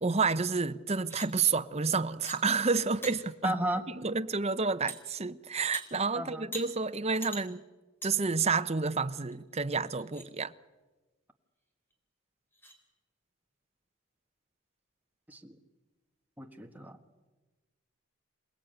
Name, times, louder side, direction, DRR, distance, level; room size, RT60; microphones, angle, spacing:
voice 1, 0.0-3.5 4.0-7.6 8.0-10.5, right 4 dB, 30° right, 0.8 m, -30 dB
sound 1, 0.9-1.3 2.3-2.4 2.8-3.1 4.9-5.0 5.7-5.8 6.5-6.7 7.2-7.4 8.0-8.1 8.6-8.7 9.3-9.4 9.9-10.3 11.9-12.0 12.5-12.8, right 1 dB, 10° left, 3.9 m, -42 dB
voice 2, 3.4-3.8 6.1-6.5 15.3-15.6 16.4-17.0, right 1 dB, 10° right, 1.5 m, -34 dB
28.0 x 19.0 x 9.1 m
head